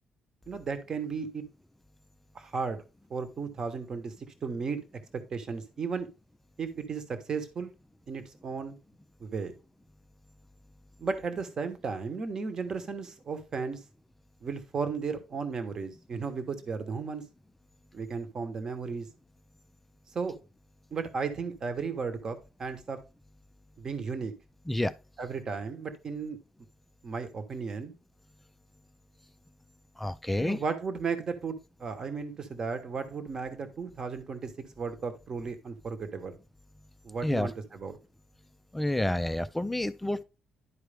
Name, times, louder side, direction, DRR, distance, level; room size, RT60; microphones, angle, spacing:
voice 1, 0.5-1.4 2.3-2.8 3.1-4.1 4.4-4.8 5.1-6.1 6.6-7.7 8.1-8.7 9.2-9.5 11.0-13.8 14.4-17.2 17.9-19.1 20.1-20.4 20.9-23.0 23.8-24.3 25.2-26.4 27.0-27.9 30.4-34.5 34.8-36.3 37.0-38.0, right 5 dB, 30° right, 1.0 m, -34 dB
voice 2, 30.0-30.6 37.2-37.5 38.7-40.2, left 1 dB, 5° left, 0.3 m, -29 dB
11.0 x 4.6 x 3.3 m
cardioid pair, 175°, 2 cm